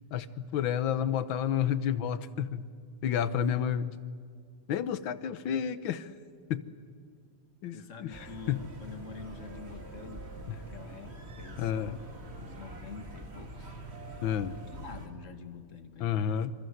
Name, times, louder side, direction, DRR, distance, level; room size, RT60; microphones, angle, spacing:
voice 1, 0.1-2.6 3.0-4.0 4.7-6.1 6.5-6.6 7.6-8.6 11.6-12.0 14.2-14.6 16.0-16.5, left 9 dB, 85° left, 15 dB, 1.8 m, -30 dB
voice 2, 7.7-12.0 12.3-13.7 14.7-16.5, left 4 dB, 40° left, 9 dB, 1.9 m, -47 dB
sound 1, 8.1-15.1, right 1 dB, 35° right, 2.4 m, -45 dB
27.0 x 26.0 x 8.0 m, 2.1 s
omnidirectional pair, 2.1 m